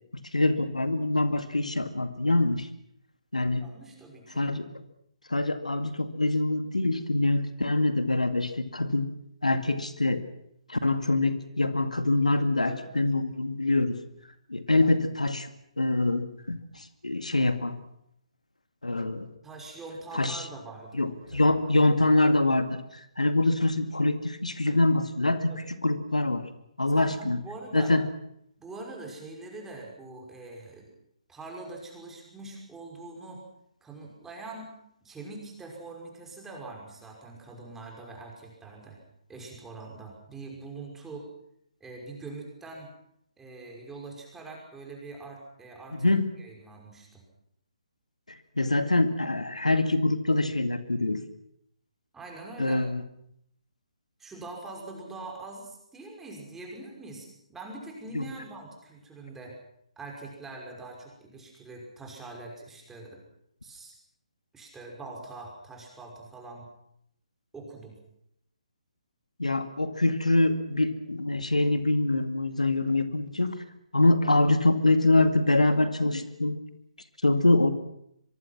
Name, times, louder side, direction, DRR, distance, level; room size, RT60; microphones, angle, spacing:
voice 1, 0.1-2.7 3.3-3.6 4.3-4.7 5.3-9.1 9.4-10.2 10.7-14.0 14.5-15.5 15.8-17.8 18.8-19.3 20.1-20.5 20.9-26.4 26.8-27.4 27.7-28.0 46.0-46.2 48.3-51.2 52.6-53.0 58.1-58.2 69.4-73.6 73.9-76.6 77.2-77.7, left 2 dB, 85° left, 9 dB, 2.1 m, -25 dB
voice 2, 3.6-4.4 12.6-13.0 19.4-21.6 25.5-25.7 26.9-27.9 28.6-30.9 31.3-33.4 33.8-34.7 35.0-39.0 39.3-41.3 41.8-42.9 43.4-46.1 46.4-47.1 52.1-52.8 54.2-59.6 60.0-63.2 63.6-63.9 64.5-66.7 67.5-67.9, right 3 dB, 10° right, 0 dB, 5.8 m, -43 dB
25.0 x 23.5 x 6.1 m, 0.74 s
figure-of-eight pair, 140°, 4 cm